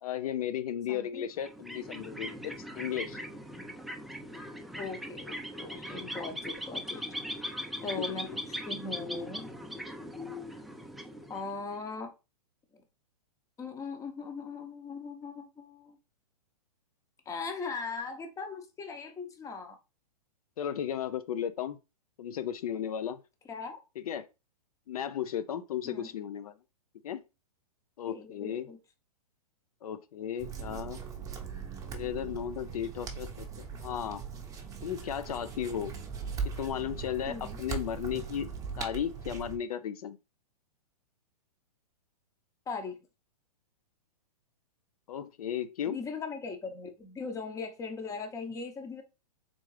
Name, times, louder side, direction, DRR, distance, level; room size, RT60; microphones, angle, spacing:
voice 1, 0.0-3.2 8.0-8.2 20.6-21.8 22.2-23.2 24.0-24.3 24.9-26.6 27.0-27.2 28.0-28.7 29.8-31.0 31.9-34.2 34.8-35.9 36.6-38.5 38.8-40.2 45.1-46.0, left 9 dB, 65° left, 0.4 m, -35 dB
voice 2, 0.9-1.2 4.8-7.1 7.8-9.5 11.3-12.1 13.6-16.0 17.3-19.8 23.5-23.8 25.8-26.1 28.1-28.8 37.3-37.6 42.7-43.0 45.9-49.0, left 4 dB, 15° left, 0.8 m, -39 dB
sound 1, 1.4-11.8, equal, ahead, 0.4 m, -40 dB
sound 2, 30.4-39.6, right 6 dB, 15° right, 0.8 m, -40 dB
3.7 x 3.5 x 3.1 m
hypercardioid pair, 120°, 20 cm